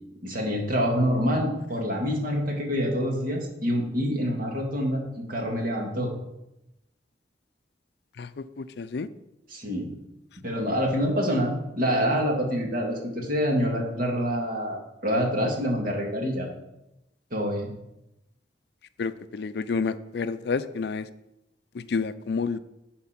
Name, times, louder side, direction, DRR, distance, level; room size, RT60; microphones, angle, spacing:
voice 1, 0.2-6.1 9.5-9.9 10.4-16.5 17.3-17.7, equal, 50° right, 0 dB, 2.0 m, -26 dB
voice 2, 8.2-9.1 19.0-21.1 21.7-22.6, left 4 dB, 65° left, 13 dB, 0.4 m, -30 dB
11.0 x 4.4 x 5.9 m, 0.90 s
head